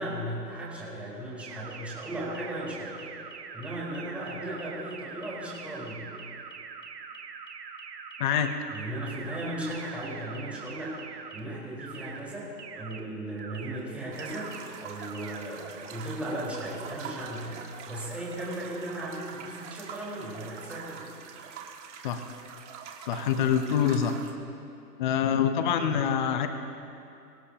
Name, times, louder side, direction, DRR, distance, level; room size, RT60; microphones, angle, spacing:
voice 1, 0.0-3.1 3.5-6.1 8.7-21.1, right 1 dB, 5° right, -7 dB, 4.6 m, -36 dB
sound 1, 1.4-11.4 11.8-12.2 12.6-13.0 13.4-13.8 14.2-14.6 15.0-15.4, right 6 dB, 75° right, 2.2 m, -43 dB
voice 2, 8.2-8.5 22.0-22.2 23.1-24.2 25.0-26.5, left 8 dB, 30° left, 8 dB, 0.9 m, -25 dB
sound 2, 14.1-24.3, right 7 dB, 45° right, 2.3 m, -44 dB
25.0 x 17.0 x 3.0 m, 2.6 s
hypercardioid pair, 145°, 49 cm